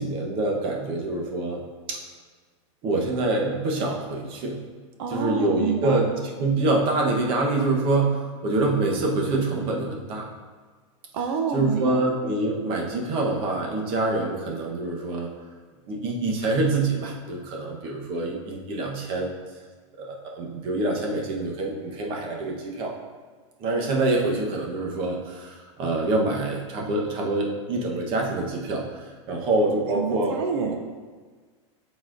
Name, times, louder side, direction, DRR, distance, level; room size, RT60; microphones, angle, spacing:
voice 1, 0.0-1.6 1.9-2.0 2.8-4.6 5.1-6.0 6.4-10.3 11.5-15.3 15.9-19.3 20.0-22.9 23.6-30.4, right 2 dB, 30° right, -1 dB, 1.1 m, -26 dB
voice 2, 5.0-6.0 11.1-12.0 29.9-30.7, right 6 dB, 55° right, 4 dB, 0.7 m, -28 dB
12.0 x 4.2 x 2.6 m, 1.5 s
supercardioid pair, 160°, 17 cm